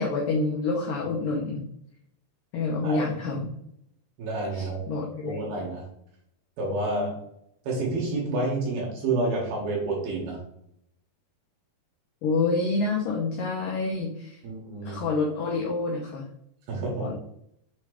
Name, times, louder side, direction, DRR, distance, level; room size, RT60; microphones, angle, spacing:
voice 1, 0.0-1.6 2.5-3.5 4.5-5.4 12.2-14.4 14.9-16.3 17.0-17.1, left 3 dB, 85° left, -1 dB, 1.9 m, -27 dB
voice 2, 4.2-4.8 5.2-5.8 6.6-7.1 7.6-10.4 14.4-15.0 16.7-17.1, right 2 dB, 65° right, -3 dB, 3.2 m, -29 dB
7.2 x 3.2 x 4.9 m, 0.75 s
omnidirectional pair, 5.0 m